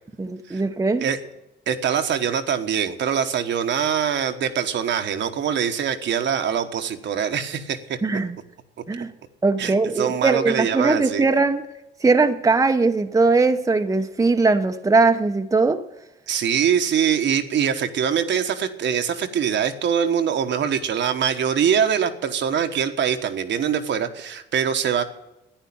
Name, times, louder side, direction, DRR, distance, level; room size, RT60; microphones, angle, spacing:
voice 1, 0.2-1.1 8.0-8.4 8.9-9.1 9.4-11.7 12.0-15.8, right 3 dB, 15° right, 0.9 m, -20 dB
voice 2, 1.7-8.0 9.6-11.2 16.3-25.0, right 8 dB, 65° right, 1.3 m, -23 dB
10.5 x 9.9 x 8.7 m
cardioid pair, 90°, 20 cm